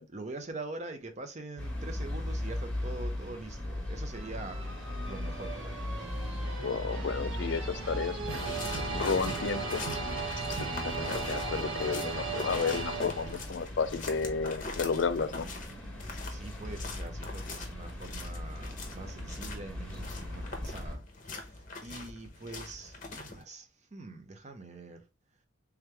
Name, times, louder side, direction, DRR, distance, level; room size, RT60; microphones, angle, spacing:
voice 1, 0.1-4.6 5.1-5.8 16.3-21.0 21.3-23.7 23.9-25.0, right 2 dB, 35° right, 0.6 m, -44 dB
sound 1, 1.6-20.9, left 1 dB, 5° left, 1.3 m, -39 dB
sound 2, 4.1-13.6, right 3 dB, 80° right, 1.0 m, -37 dB
voice 2, 6.6-8.5 8.9-9.8 10.8-15.5, left 5 dB, 60° left, 0.4 m, -32 dB
sound 3, 8.2-23.4, left 3 dB, 40° left, 0.8 m, -43 dB
3.5 x 3.1 x 3.3 m
head